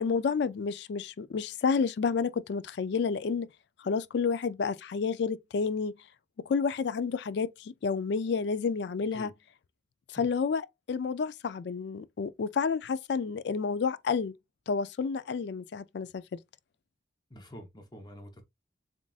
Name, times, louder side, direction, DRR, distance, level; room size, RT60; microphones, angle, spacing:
voice 1, 0.0-3.5 3.8-5.9 6.5-9.3 10.1-14.3 14.7-16.4, left 5 dB, 60° left, 0.3 m, -30 dB
voice 2, 17.3-18.4, equal, 20° left, 0.8 m, -46 dB
7.2 x 2.5 x 2.3 m
head